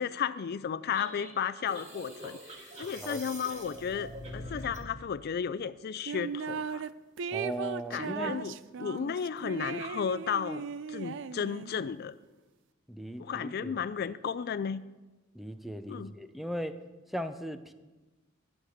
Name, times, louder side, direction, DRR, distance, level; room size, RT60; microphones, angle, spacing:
voice 1, 0.0-6.9 7.9-12.2 13.2-14.8 15.9-16.1, left 7 dB, 50° left, 15 dB, 0.4 m, -34 dB
sound 1, 0.9-4.9, equal, 35° right, 2.4 m, -44 dB
sound 2, 6.1-6.9 7.2-11.8, right 6 dB, 65° right, 0.4 m, -37 dB
voice 2, 7.3-8.3 12.9-13.7 15.3-16.8 17.1-17.7, equal, ahead, 9 dB, 0.6 m, -37 dB
12.0 x 6.6 x 9.7 m, 1.2 s
head